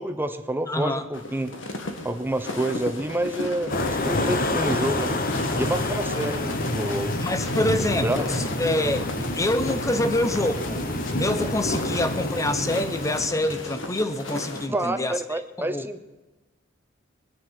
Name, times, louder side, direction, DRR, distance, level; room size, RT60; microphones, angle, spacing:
voice 1, 0.0-1.5 2.0-5.2 5.5-7.2 8.0-8.3 14.7-16.2, right 1 dB, 10° right, 9 dB, 0.9 m, -28 dB
voice 2, 0.7-1.0 7.2-10.8 11.2-15.9, left 1 dB, 15° left, 10 dB, 0.8 m, -26 dB
sound 1, 1.1-14.7, left 1 dB, 70° left, 1.8 m, -34 dB
sound 2, 3.7-13.3, left 1 dB, 50° left, 1.3 m, -28 dB
22.0 x 9.8 x 6.0 m, 1.1 s
head